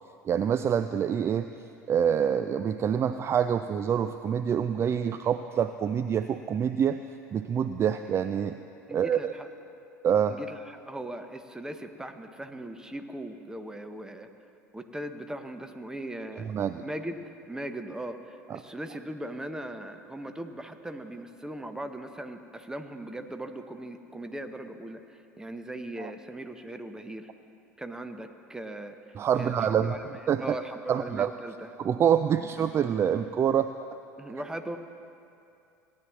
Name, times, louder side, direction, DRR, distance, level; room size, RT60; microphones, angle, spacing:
voice 1, 0.3-1.5 1.9-7.0 7.3-8.6 8.9-9.3 10.0-10.4 16.4-16.8 26.0-26.1 29.2-30.0 30.3-30.6 30.9-31.3 31.8-33.7, right 8 dB, 30° right, 10 dB, 0.3 m, -26 dB
voice 2, 8.9-9.5 10.3-14.3 14.7-16.5 16.8-17.2 17.5-27.3 27.8-30.1 30.4-31.7 32.4-32.5 34.2-34.8, right 1 dB, 5° right, 7 dB, 0.9 m, -39 dB
18.0 x 10.0 x 3.1 m, 2.5 s
figure-of-eight pair, 70°, 9 cm